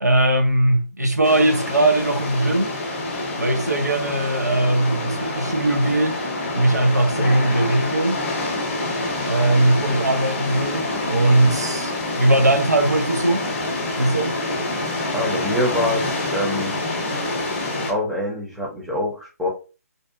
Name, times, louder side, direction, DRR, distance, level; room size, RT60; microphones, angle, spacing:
voice 1, 0.0-2.7 3.4-6.2 6.5-8.2 9.2-13.4 14.0-14.4, right 1 dB, 90° right, 0.6 m, -20 dB
sound 1, 1.2-17.9, left 2 dB, 40° left, 0.7 m, -26 dB
voice 2, 15.1-16.7 17.9-19.5, left 1 dB, 5° right, 0.7 m, -25 dB
2.7 x 2.3 x 2.5 m
figure-of-eight pair, 140°, 9 cm